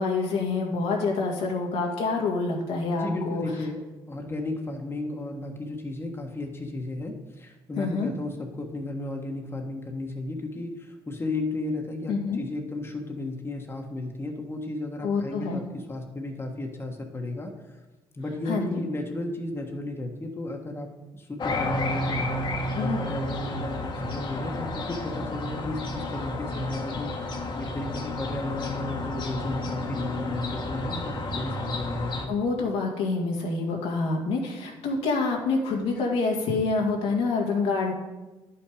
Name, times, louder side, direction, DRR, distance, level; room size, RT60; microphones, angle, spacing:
voice 1, 0.0-3.4 7.8-8.1 12.1-12.4 15.0-15.6 18.5-18.8 22.8-23.0 32.3-37.9, left 3 dB, 80° left, -1 dB, 2.0 m, -27 dB
voice 2, 3.0-3.8 4.1-17.8 18.1-32.3, left 2 dB, 20° left, 2 dB, 1.4 m, -34 dB
sound 1, 21.4-32.3, left 1 dB, 45° left, 1.6 m, -31 dB
10.5 x 5.8 x 5.0 m, 1.1 s
supercardioid pair, 70°, 11 cm